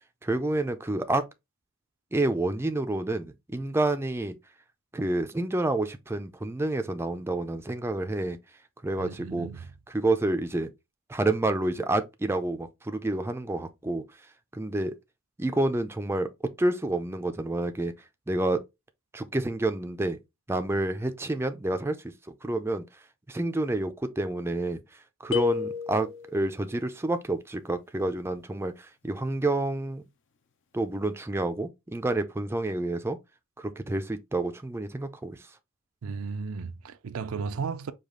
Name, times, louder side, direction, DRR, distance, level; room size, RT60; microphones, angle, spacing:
voice 1, 0.2-1.2 2.1-4.4 4.9-8.4 8.8-9.5 9.9-10.7 11.1-14.0 14.5-15.0 15.4-16.3 16.6-17.9 18.3-18.6 19.1-20.2 20.5-22.0 22.4-22.8 23.3-30.0 30.7-33.2 33.6-35.4, right 2 dB, 10° right, 0.4 m, -29 dB
voice 2, 9.0-9.7 36.0-37.9, right 5 dB, 75° right, 0.4 m, -34 dB
sound 1, 25.3-26.5, left 7 dB, 60° left, 0.6 m, -31 dB
5.0 x 2.4 x 3.6 m
head